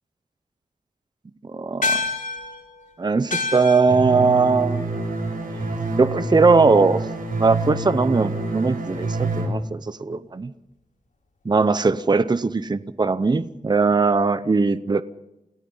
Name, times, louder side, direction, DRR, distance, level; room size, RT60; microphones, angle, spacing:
voice 1, 1.5-2.0 3.0-4.8 5.5-5.6 6.0-7.0 7.4-10.5 11.4-15.0, right 4 dB, 30° right, 14 dB, 0.7 m, -20 dB
sound 1, 1.8-6.5, left 3 dB, 60° left, 4.1 m, -31 dB
sound 2, 3.9-9.5, right 2 dB, 80° right, 6.4 m, -27 dB
29.0 x 18.0 x 5.6 m, 0.89 s
wide cardioid pair, 110°, 15 cm